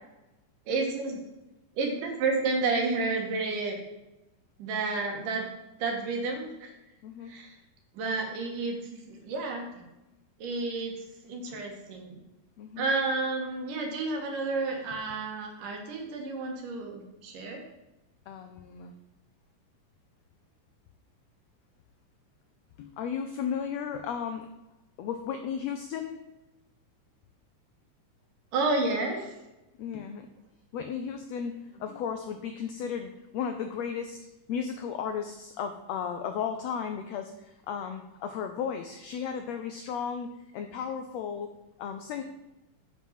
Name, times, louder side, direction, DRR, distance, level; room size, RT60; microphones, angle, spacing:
voice 1, 0.7-1.2 1.7-3.8 4.6-5.5 5.8-6.7 7.3-7.6 7.9-9.7 10.4-12.2 12.8-17.6 28.5-29.3, right 3 dB, 85° right, 1 dB, 3.0 m, -31 dB
voice 2, 7.0-7.4 11.5-11.6 12.6-12.9 18.3-18.9 22.8-24.5 25.0-26.2 29.8-30.3 30.7-41.5 41.8-42.2, left 7 dB, 90° left, 6 dB, 1.4 m, -35 dB
7.7 x 5.3 x 5.5 m, 0.99 s
omnidirectional pair, 3.7 m